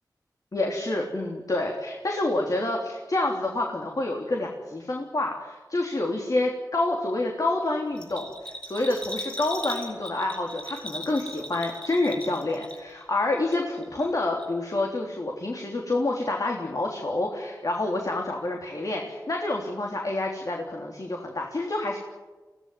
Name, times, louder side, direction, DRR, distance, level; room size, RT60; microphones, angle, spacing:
voice 1, 0.5-22.0, left 2 dB, 55° left, 1 dB, 3.5 m, -28 dB
Bell, 7.9-13.0 13.3-14.1 14.4-14.5, left 1 dB, 15° left, 6.8 m, -38 dB
23.5 x 17.0 x 9.9 m, 1.3 s
wide cardioid pair, 55°, 7 cm